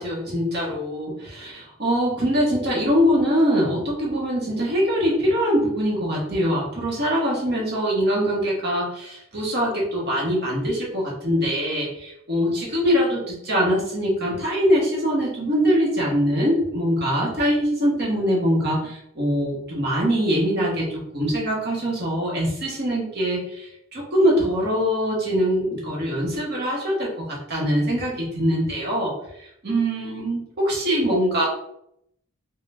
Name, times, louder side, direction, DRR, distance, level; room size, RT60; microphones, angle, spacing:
voice 1, 0.0-31.5, equal, 50° right, -3 dB, 1.2 m, -23 dB
3.6 x 2.3 x 3.4 m, 0.76 s
head